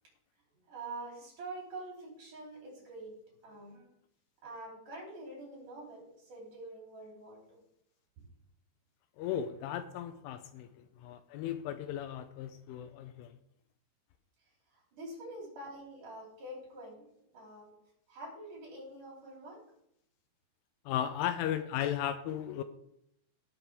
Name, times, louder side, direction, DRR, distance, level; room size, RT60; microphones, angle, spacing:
voice 1, 0.5-3.1 3.4-3.9 4.4-7.6 8.2-8.3 14.7-17.7 18.1-19.6, right 2 dB, 40° right, 4.9 m, -46 dB
voice 2, 9.2-13.3 20.9-22.6, left 10 dB, 85° left, 3.0 m, -36 dB
18.0 x 7.6 x 3.6 m
omnidirectional pair, 5.8 m